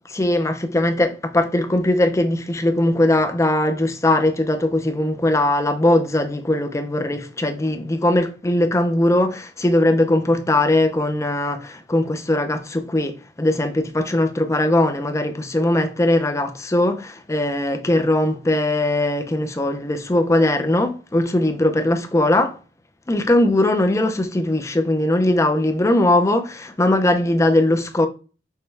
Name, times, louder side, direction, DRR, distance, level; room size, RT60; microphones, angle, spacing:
voice 1, 0.1-22.6 23.1-28.1, left 1 dB, 15° left, 0.5 m, -20 dB
6.3 x 2.2 x 3.3 m
head